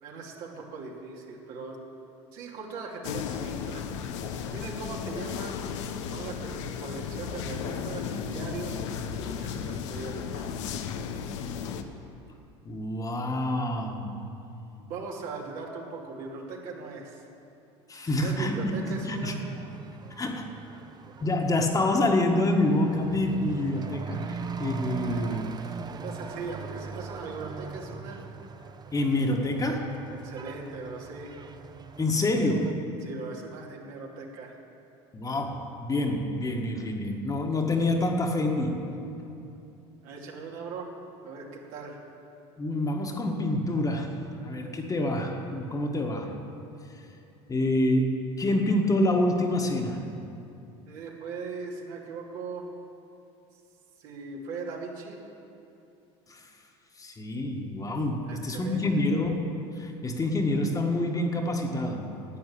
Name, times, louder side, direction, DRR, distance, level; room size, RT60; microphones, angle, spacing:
voice 1, 0.0-1.8 2.3-3.9 4.5-5.6 6.1-10.6 14.8-17.2 18.1-19.4 24.3-24.5 26.0-28.3 30.2-31.3 33.0-34.6 40.0-40.9 41.2-42.0 50.9-52.7 53.5-53.6 54.0-55.2 58.3-59.0, right 4 dB, 65° right, -1 dB, 2.6 m, -39 dB
sound 1, 3.0-11.8, left 7 dB, 80° left, 0.9 m, -34 dB
voice 2, 12.6-14.1 17.9-18.6 18.9-19.5 20.2-20.5 21.2-25.6 28.9-30.1 32.0-32.8 35.1-39.0 42.6-46.4 47.5-50.0 56.3-56.5 57.0-59.3 59.7-62.2, left 1 dB, 25° left, 2 dB, 1.6 m, -27 dB
Truck / Accelerating revving vroom, 18.3-32.7, right 5 dB, 25° right, 0.7 m, -41 dB
11.5 x 8.6 x 8.7 m, 2.7 s
supercardioid pair, 90°, 15 cm